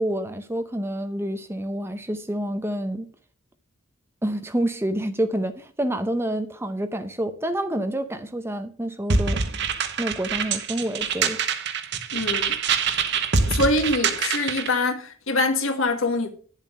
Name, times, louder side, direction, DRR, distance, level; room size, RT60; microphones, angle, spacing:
voice 1, 0.0-3.1 4.2-9.4 10.0-11.4, right 1 dB, 10° right, 0.7 m, -28 dB
sound 1, 9.1-14.7, right 5 dB, 55° right, 1.1 m, -25 dB
voice 2, 12.1-12.6 13.5-16.3, left 2 dB, 75° left, 1.9 m, -24 dB
10.5 x 7.4 x 5.3 m
head